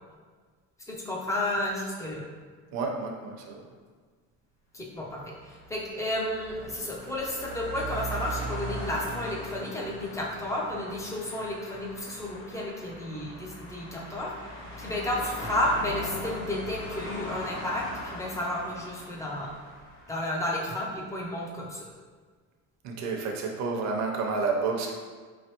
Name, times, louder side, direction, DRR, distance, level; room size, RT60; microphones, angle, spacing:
voice 1, 0.9-2.3 4.7-14.3 14.8-19.5 20.1-21.9, left 1 dB, 10° left, -2 dB, 0.4 m, -32 dB
voice 2, 2.7-3.6 22.8-24.9, right 4 dB, 55° right, 1 dB, 0.7 m, -30 dB
sound 1, 5.2-20.6, equal, 65° left, 1.1 m, -40 dB
4.5 x 3.2 x 2.9 m, 1.5 s
cardioid pair, 175°, 32 cm